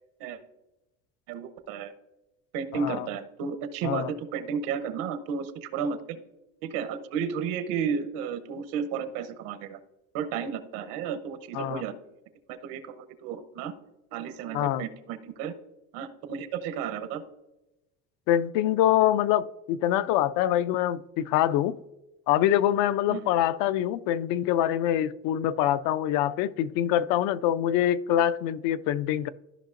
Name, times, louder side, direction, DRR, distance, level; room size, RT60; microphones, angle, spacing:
voice 1, 1.3-1.9 2.5-6.2 6.6-9.8 10.1-11.9 12.5-13.7 14.1-15.5 15.9-17.2 23.1-23.3, right 6 dB, 80° right, 0.9 m, -33 dB
voice 2, 14.5-14.8 18.3-21.8 22.3-29.3, left 11 dB, 75° left, 0.5 m, -25 dB
13.0 x 5.6 x 2.5 m
cardioid pair, 160°, 33 cm